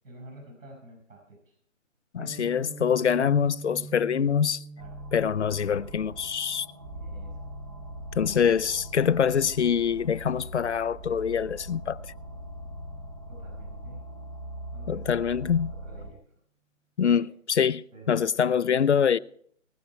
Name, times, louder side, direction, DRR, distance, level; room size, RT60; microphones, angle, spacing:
voice 1, 0.0-1.5 4.5-5.0 6.9-7.4 8.2-8.3 13.3-14.0 14.7-15.1 15.3-16.2 17.2-17.3 17.9-18.6, right 2 dB, 90° right, 5.6 m, -50 dB
voice 2, 2.1-4.6 5.1-6.7 8.2-12.0 14.9-15.7 17.0-19.2, left 7 dB, 60° left, 0.6 m, -25 dB
Guitar, 2.2-10.0, right 4 dB, 45° right, 1.2 m, -46 dB
sound 1, 4.8-16.1, right 1 dB, 20° right, 0.8 m, -41 dB
20.0 x 10.0 x 4.6 m
hypercardioid pair, 175°, 39 cm